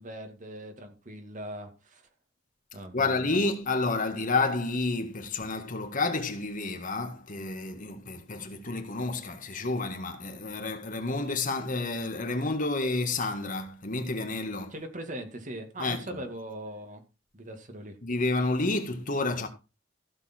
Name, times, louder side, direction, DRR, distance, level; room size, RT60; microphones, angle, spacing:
voice 1, 0.0-2.1 2.7-3.4 14.7-17.0 17.3-18.0, right 1 dB, 40° right, 2.3 m, -40 dB
voice 2, 2.9-14.7 15.8-16.0 18.0-19.5, left 3 dB, 45° left, 1.9 m, -30 dB
15.0 x 6.9 x 4.5 m
head